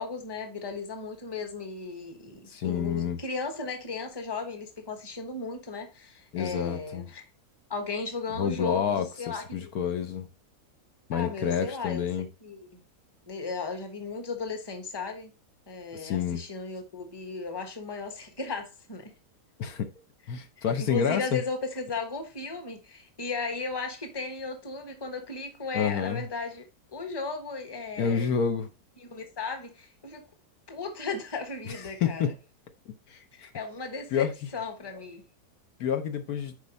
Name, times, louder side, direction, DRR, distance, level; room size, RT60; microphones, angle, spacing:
voice 1, 0.0-7.3 7.7-9.7 11.1-12.1 12.4-12.8 13.3-15.3 15.7-19.1 20.6-26.7 26.9-28.3 29.0-30.2 30.7-32.3 33.3-35.2, left 4 dB, 15° left, 1.2 m, -36 dB
voice 2, 2.5-3.2 6.3-7.1 8.4-10.3 11.1-12.3 15.9-16.4 19.6-19.9 20.3-21.4 25.7-26.2 28.0-28.7 32.0-32.3 33.1-33.2 34.1-34.3 35.8-36.5, left 7 dB, 70° left, 1.4 m, -28 dB
7.9 x 5.0 x 4.1 m
omnidirectional pair, 1.7 m